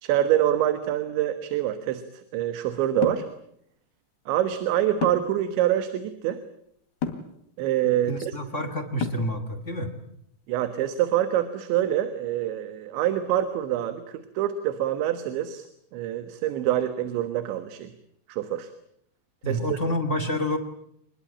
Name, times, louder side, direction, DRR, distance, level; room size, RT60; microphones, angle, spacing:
voice 1, 0.0-3.3 4.3-6.4 7.6-8.3 10.5-15.7 15.9-17.9 18.3-18.7 19.5-19.8, right 12 dB, 80° right, 11 dB, 3.7 m, -26 dB
sound 1, 3.0-3.3 5.0-5.4 7.0-7.3 9.0-9.4, left 6 dB, 65° left, 4.1 m, -29 dB
voice 2, 8.1-9.9 19.4-20.6, equal, 35° left, 6 dB, 1.1 m, -28 dB
26.5 x 21.0 x 8.8 m, 0.71 s
omnidirectional pair, 5.2 m